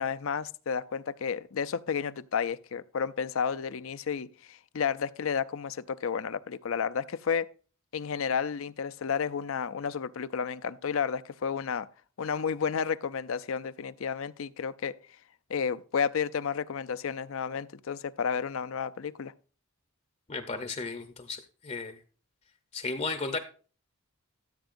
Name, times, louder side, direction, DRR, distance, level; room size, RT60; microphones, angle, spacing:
voice 1, 0.0-7.5 7.9-11.9 12.2-14.9 15.5-19.3, left 6 dB, 65° left, 0.5 m, -31 dB
voice 2, 20.3-22.0 22.7-23.4, left 3 dB, 30° left, 0.7 m, -34 dB
14.0 x 8.0 x 2.5 m
head